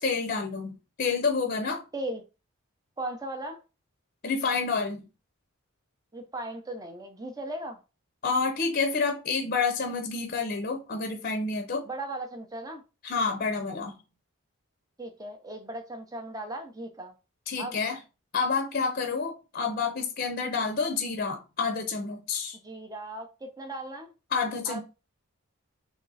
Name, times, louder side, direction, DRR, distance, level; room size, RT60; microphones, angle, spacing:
voice 1, 0.0-1.8 4.2-5.0 8.2-11.9 13.0-13.9 17.5-18.0 18.3-22.6 24.3-24.8, left 4 dB, 40° left, 0.6 m, -29 dB
voice 2, 1.9-2.2 3.0-3.6 6.1-7.8 11.9-12.8 15.0-17.1 17.6-17.8 22.6-24.1 24.7-24.8, right 1 dB, 15° right, 0.6 m, -37 dB
3.6 x 3.0 x 4.0 m
head